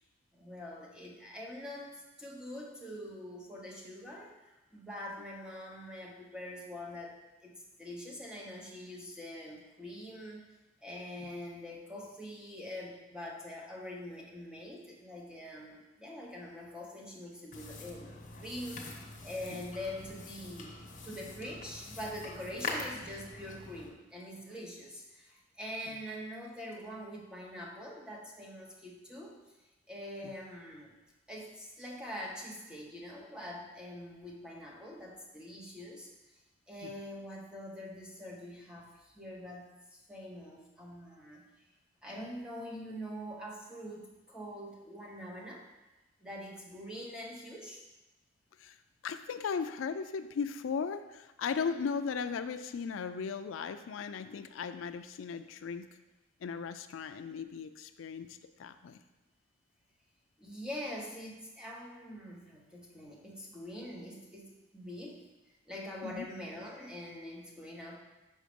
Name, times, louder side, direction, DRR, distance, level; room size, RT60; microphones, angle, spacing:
voice 1, 0.3-7.5 7.8-10.4 10.8-29.4 29.9-31.0 31.3-36.1 36.7-41.7 42.0-45.6 46.2-47.8 60.4-68.0, left 1 dB, 5° right, -2 dB, 1.1 m, -44 dB
sound 1, 17.5-23.9, left 3 dB, 40° left, 1.0 m, -44 dB
voice 2, 49.0-55.9 56.4-59.0 66.0-66.3, left 6 dB, 80° left, 9 dB, 0.4 m, -37 dB
6.3 x 4.6 x 5.2 m, 1.1 s
head